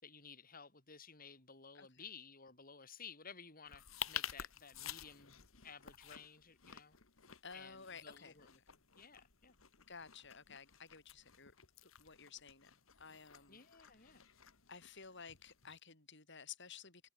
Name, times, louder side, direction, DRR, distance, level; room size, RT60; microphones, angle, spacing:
voice 1, 0.0-7.0 7.5-8.6 8.9-9.6 13.5-14.2, left 6 dB, 45° left, 6.1 m, -55 dB
sound 1, 3.7-15.8, left 10 dB, 85° left, 2.1 m, -51 dB
voice 2, 7.4-8.3 9.9-11.5 11.8-13.6 14.1-14.4 14.7-17.1, left 6 dB, 60° left, 6.0 m, -54 dB
head